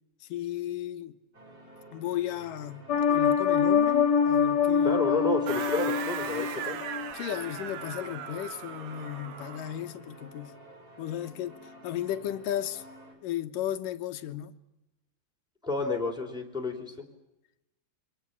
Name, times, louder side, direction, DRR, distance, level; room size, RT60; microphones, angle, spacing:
voice 1, 0.2-1.1 1.9-5.0 7.1-10.5 11.0-12.8 13.2-14.6, left 11 dB, 70° left, 2.5 m, -35 dB
Lübeck domglocken, 1.3-13.1, right 1 dB, 20° right, 5.9 m, -51 dB
sound 1, 2.9-7.1 7.5-7.6, left 7 dB, 50° left, 1.2 m, -25 dB
voice 2, 4.8-6.8 15.6-16.9, left 3 dB, ahead, 4.0 m, -30 dB
sound 2, 5.5-9.9, right 8 dB, 65° right, 3.1 m, -38 dB
29.5 x 24.5 x 7.2 m
omnidirectional pair, 4.6 m